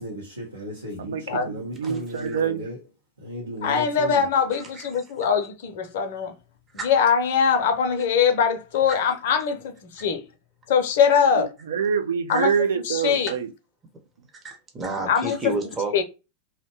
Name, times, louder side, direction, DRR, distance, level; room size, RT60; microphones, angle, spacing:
voice 1, 0.0-2.8 3.2-4.3, equal, 80° right, 0.7 m, -35 dB
voice 2, 1.0-2.6 11.4-13.5, right 7 dB, 65° right, 0.3 m, -26 dB
voice 3, 1.8-2.4 4.6-4.9 6.7-6.9 8.9-9.0 12.3-12.4 14.4-16.0, right 2 dB, 20° right, 0.7 m, -31 dB
voice 4, 3.6-6.3 6.8-10.2 10.7-11.5 12.3-12.5 12.8-13.3 15.1-15.5 15.9-16.0, left 6 dB, 55° left, 0.5 m, -22 dB
2.7 x 2.1 x 2.7 m
figure-of-eight pair, 90°, 0 cm